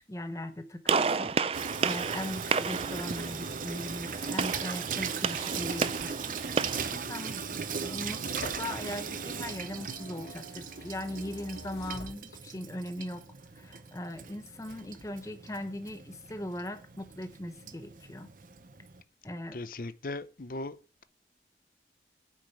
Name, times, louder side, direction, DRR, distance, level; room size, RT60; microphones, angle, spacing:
voice 1, 0.0-13.2 13.5-18.3 19.2-19.6, left 1 dB, 20° left, 0.8 m, -39 dB
Gunshot gunfire, 0.9-6.9, right 5 dB, 35° right, 0.3 m, -32 dB
Water tap faucet / Sink (filling or washing), 1.5-19.0, right 6 dB, 50° right, 0.7 m, -38 dB
sound 1, 6.0-12.8 13.2-14.2 14.6-15.1, left 1 dB, 70° left, 1.5 m, -49 dB
voice 2, 19.5-20.8, left 2 dB, 50° left, 0.6 m, -37 dB
9.1 x 5.0 x 6.7 m
head